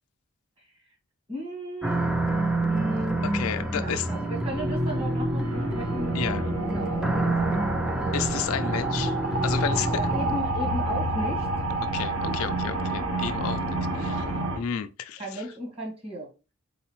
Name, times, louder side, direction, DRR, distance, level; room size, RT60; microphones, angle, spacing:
voice 1, 1.3-2.2 2.6-3.2 3.7-6.1 6.7-8.2 9.9-11.5 12.3-12.5 15.2-16.5, equal, 25° right, 1.6 m, -35 dB
sound 1, 1.8-10.4, right 2 dB, 5° right, 0.3 m, -28 dB
voice 2, 3.2-4.1 6.1-6.4 8.1-9.2 9.4-10.1 11.9-14.3 14.5-15.5, left 8 dB, 80° left, 0.4 m, -32 dB
sound 2, 4.0-14.6, right 2 dB, 75° right, 1.0 m, -30 dB
4.0 x 3.8 x 3.0 m
head